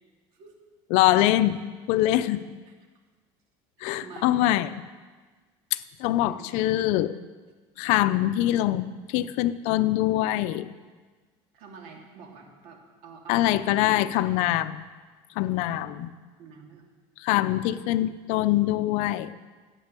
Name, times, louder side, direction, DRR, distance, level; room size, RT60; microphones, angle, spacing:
voice 1, 0.9-1.6 1.9-2.4 3.8-4.7 5.7-7.2 7.8-8.9 9.1-10.7 13.3-14.9 15.4-16.1 17.2-19.3, left 14 dB, 70° left, 14 dB, 0.6 m, -24 dB
voice 2, 4.0-4.5 6.2-6.6 11.5-14.2 16.4-16.8 17.6-17.7, right 5 dB, 70° right, 1 dB, 2.7 m, -47 dB
14.0 x 9.1 x 6.9 m, 1.4 s
cardioid pair, 140°, 12 cm